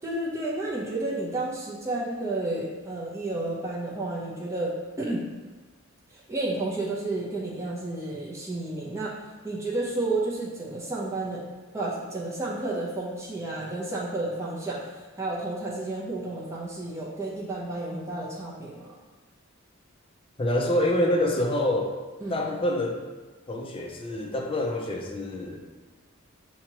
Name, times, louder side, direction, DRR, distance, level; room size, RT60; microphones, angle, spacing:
voice 1, 0.0-5.3 6.1-9.1 9.4-11.4 11.7-18.9 22.2-22.4, right 2 dB, 15° right, -5 dB, 0.7 m, -31 dB
voice 2, 20.4-21.9 22.3-23.0 23.5-25.6, left 1 dB, 25° left, 1 dB, 0.4 m, -26 dB
5.8 x 2.8 x 2.9 m, 1.3 s
head